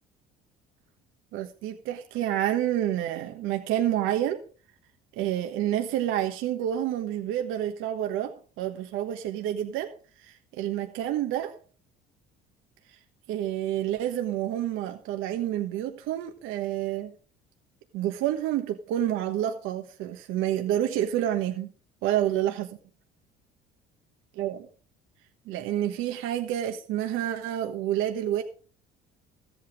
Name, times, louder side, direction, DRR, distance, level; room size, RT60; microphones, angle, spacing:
voice 1, 1.3-4.4 5.2-8.3 8.6-9.9 10.2-11.6 13.3-17.1 17.9-21.7 22.0-22.7 24.4-24.7 25.5-28.4, right 11 dB, 75° right, 5 dB, 1.2 m, -28 dB
13.5 x 8.5 x 4.9 m, 0.41 s
supercardioid pair, 75°, 21 cm